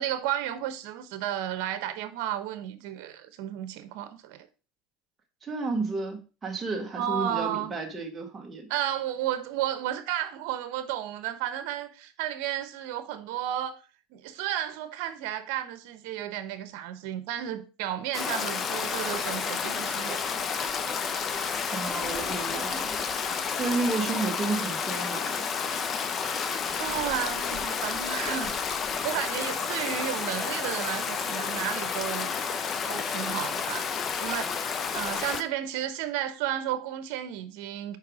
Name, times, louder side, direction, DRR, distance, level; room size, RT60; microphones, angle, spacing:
voice 1, 0.0-4.5 7.0-7.7 8.7-13.8 14.1-20.4 26.8-28.5 29.0-32.3 32.8-38.0, right 11 dB, 65° right, 1.0 m, -33 dB
voice 2, 5.4-8.7 21.7-23.0 23.6-25.5, right 3 dB, 20° right, 1.2 m, -32 dB
Stream, 18.1-35.4, left 6 dB, 30° left, 0.6 m, -31 dB
4.8 x 4.6 x 4.8 m
supercardioid pair, 130°, 0 cm